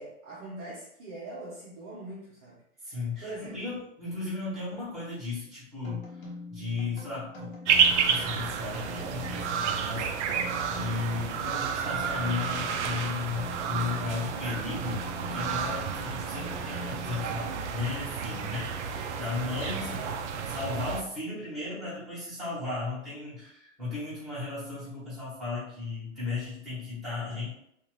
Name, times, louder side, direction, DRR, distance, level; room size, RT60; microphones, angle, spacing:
voice 1, 0.0-2.6 2.9-3.6 19.8-20.2, right 2 dB, 30° right, -7 dB, 0.6 m, -42 dB
voice 2, 2.8-6.2 6.5-7.5 8.0-10.3 10.6-15.0 15.3-18.6 19.2-20.0 20.5-27.5, left 4 dB, ahead, -12 dB, 1.1 m, -35 dB
sound 1, 5.8-18.0, left 2 dB, 45° left, 1.0 m, -44 dB
sound 2, 7.7-21.0, right 6 dB, 70° right, 0.5 m, -30 dB
2.6 x 2.5 x 3.1 m, 0.74 s
supercardioid pair, 170°, 36 cm